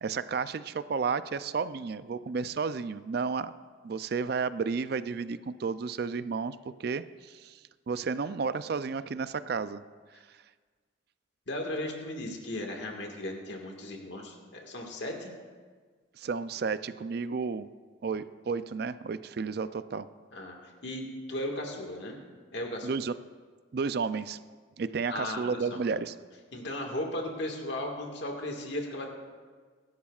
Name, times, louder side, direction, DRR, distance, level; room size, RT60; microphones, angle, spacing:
voice 1, 0.0-3.5 3.8-7.6 7.9-9.8 16.2-17.7 18.0-20.1 22.8-23.1 23.7-24.4 24.8-26.1, right 5 dB, 55° right, 14 dB, 0.4 m, -32 dB
voice 2, 11.5-15.3 20.3-20.5 20.8-22.2 22.5-22.9 25.1-25.7 26.5-29.1, left 1 dB, 65° left, 1 dB, 1.7 m, -36 dB
23.0 x 11.5 x 2.4 m, 1.5 s
head